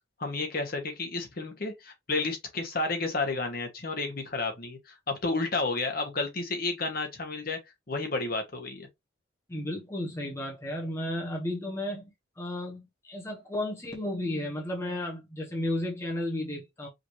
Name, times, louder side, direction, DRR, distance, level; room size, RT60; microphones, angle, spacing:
voice 1, 0.2-7.6 7.9-8.9, left 3 dB, 50° left, 1.2 m, -31 dB
voice 2, 9.5-16.9, left 1 dB, 15° left, 1.0 m, -33 dB
5.0 x 2.7 x 3.1 m
head